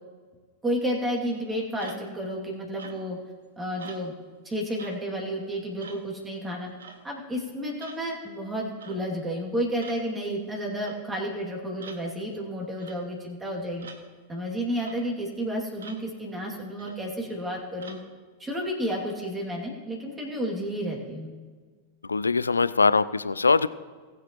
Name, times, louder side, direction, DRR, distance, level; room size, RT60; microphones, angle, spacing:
voice 1, 0.6-3.2 3.6-4.1 4.4-6.7 7.0-13.9 14.3-18.0 18.4-21.3, equal, 10° right, -2 dB, 2.6 m, -31 dB
sound 1, 1.8-2.2 2.8-3.2 3.8-4.1 4.8-5.0 5.8-6.1 6.8-7.0 7.8-8.0 8.8-9.0 9.8-10.0 10.8-11.0 11.8-12.0 12.8-13.0 13.8-14.0 14.8-15.0 15.8-16.0 16.8-17.1 17.8-18.0, right 5 dB, 65° right, 1.3 m, -45 dB
voice 2, 22.1-23.7, left 4 dB, 75° left, 17 dB, 0.3 m, -22 dB
19.5 x 8.1 x 3.1 m, 1.5 s
figure-of-eight pair, 90°, 0 cm